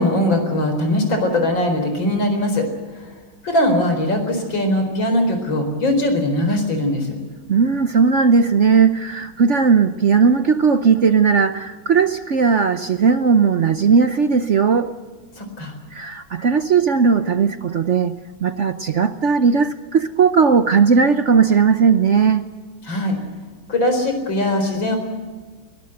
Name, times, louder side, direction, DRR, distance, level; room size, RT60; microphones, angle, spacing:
voice 1, 0.0-2.7 2.9-3.1 3.4-7.2 15.4-15.7 22.8-23.1 23.7-25.0, left 1 dB, 65° left, 6 dB, 5.1 m, -20 dB
voice 2, 7.5-14.9 15.9-22.5, right 5 dB, 60° right, 10 dB, 0.8 m, -17 dB
21.5 x 20.0 x 7.9 m, 1.4 s
omnidirectional pair, 2.2 m